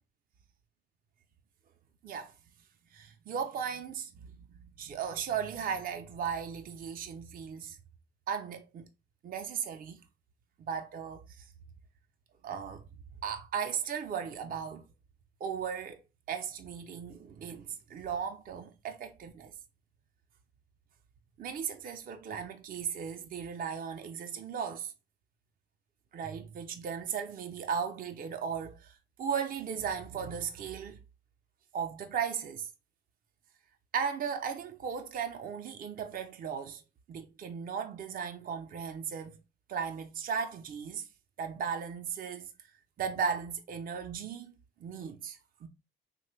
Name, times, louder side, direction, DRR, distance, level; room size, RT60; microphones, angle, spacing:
voice 1, 2.9-4.4 4.8-7.8 8.3-8.9 9.2-10.0 10.6-11.4 12.4-12.8 13.2-14.9 15.4-16.0 16.3-19.5 21.4-24.9 26.1-31.0 31.7-32.7 33.9-36.8 37.1-39.4 39.7-41.1 41.4-42.5 43.0-45.7, right 7 dB, 45° right, 0.5 m, -36 dB
3.2 x 2.2 x 3.0 m
cardioid pair, 90°, 20 cm